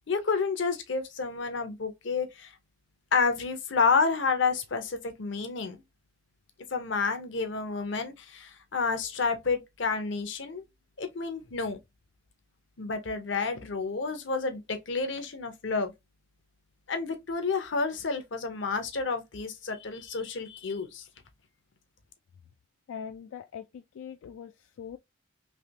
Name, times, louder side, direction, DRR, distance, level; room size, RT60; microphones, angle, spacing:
voice 1, 0.1-2.5 3.1-5.8 6.7-10.6 11.0-11.8 12.8-15.9 16.9-21.0, left 4 dB, 65° left, 0.7 m, -30 dB
voice 2, 22.9-25.0, left 7 dB, 85° left, 0.3 m, -42 dB
3.3 x 2.9 x 2.7 m
head